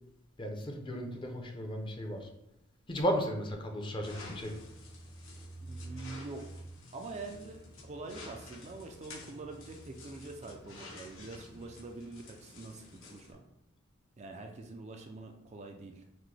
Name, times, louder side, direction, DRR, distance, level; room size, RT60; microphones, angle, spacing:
voice 1, 0.4-2.3 2.9-4.5, equal, 25° left, 3 dB, 0.6 m, -35 dB
sound 1, 4.0-13.3, left 1 dB, 80° left, 1.5 m, -49 dB
voice 2, 5.6-6.6 6.9-13.4 14.2-16.0, right 3 dB, 35° right, 3 dB, 0.4 m, -45 dB
5.8 x 2.2 x 3.2 m, 0.83 s
head